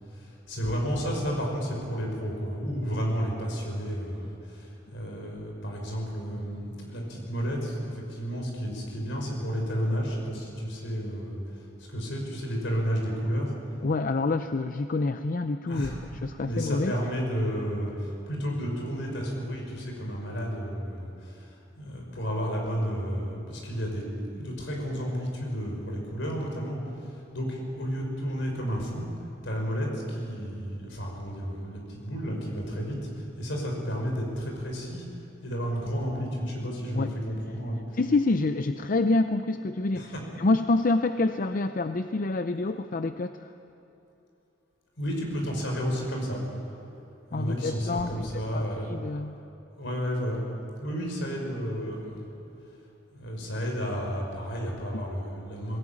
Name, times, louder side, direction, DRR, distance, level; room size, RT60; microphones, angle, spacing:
voice 1, 0.1-13.5 15.7-16.0 16.4-29.1 29.4-35.0 35.4-37.8 39.9-40.2 45.0-46.4 47.3-48.9 49.8-50.4 50.8-52.3 53.1-55.8, equal, 70° left, 0 dB, 5.5 m, -32 dB
voice 2, 13.8-15.9 16.2-16.9 37.0-37.1 37.9-40.1 40.4-43.5 47.3-48.2 48.5-49.4 54.9-55.0, left 3 dB, 45° left, 9 dB, 0.5 m, -27 dB
20.0 x 17.5 x 8.7 m, 2.9 s
head